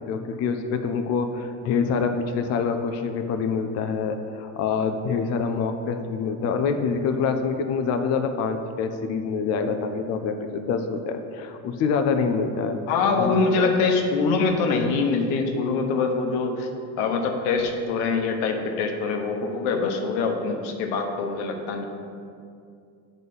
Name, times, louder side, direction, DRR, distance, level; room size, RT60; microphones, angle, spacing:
voice 1, 0.1-12.8 13.2-13.3, left 5 dB, 40° left, 6 dB, 0.4 m, -26 dB
voice 2, 12.9-16.7 17.0-21.8, left 4 dB, 90° left, 4 dB, 1.0 m, -24 dB
7.6 x 4.0 x 5.4 m, 2.4 s
cardioid pair, 145°, 42 cm